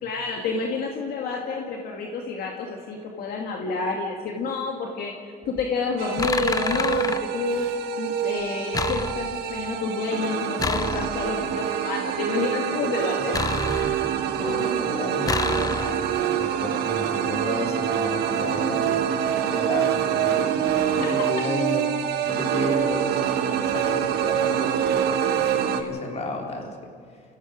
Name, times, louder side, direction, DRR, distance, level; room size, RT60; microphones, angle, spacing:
voice 1, 0.0-5.1 5.5-7.7 8.0-13.4 21.0-21.3, left 4 dB, 65° left, 1 dB, 2.2 m, -29 dB
sound 1, 5.4-5.7 6.2-7.2 8.7-9.5 10.6-11.4 13.3-14.3 15.3-16.2, left 4 dB, 20° left, 0.7 m, -29 dB
sound 2, 6.0-25.8, right 9 dB, 75° right, 1.4 m, -25 dB
voice 2, 13.7-19.1 19.5-26.8 27.1-27.2, left 2 dB, 40° left, 1 dB, 3.7 m, -33 dB
29.5 x 17.5 x 5.2 m, 2.1 s
cardioid pair, 110°, 17 cm